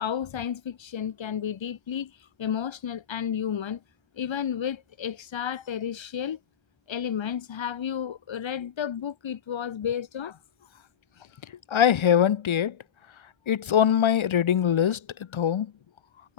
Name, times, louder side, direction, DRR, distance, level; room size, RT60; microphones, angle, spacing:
voice 1, 0.0-3.8 4.1-6.4 6.9-10.9 11.2-11.3, left 8 dB, 75° left, 1.8 m, -32 dB
voice 2, 11.7-12.8 13.5-15.0 15.3-15.7, left 9 dB, 90° left, 2.1 m, -22 dB
wide cardioid pair, 90°, 46 cm